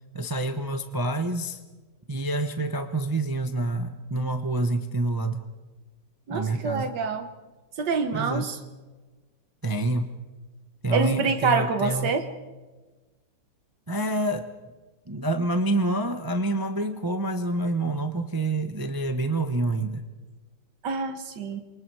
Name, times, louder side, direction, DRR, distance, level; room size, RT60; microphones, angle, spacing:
voice 1, 0.1-1.6 2.1-5.4 6.3-6.9 8.1-8.5 9.6-10.1 10.8-12.1 13.9-14.5 15.1-20.0, right 2 dB, 20° right, 7 dB, 0.6 m, -27 dB
voice 2, 6.3-7.3 7.8-8.6 10.9-12.3 20.8-21.6, right 4 dB, 75° right, 8 dB, 1.8 m, -26 dB
28.0 x 23.5 x 4.8 m, 1.2 s
omnidirectional pair, 1.9 m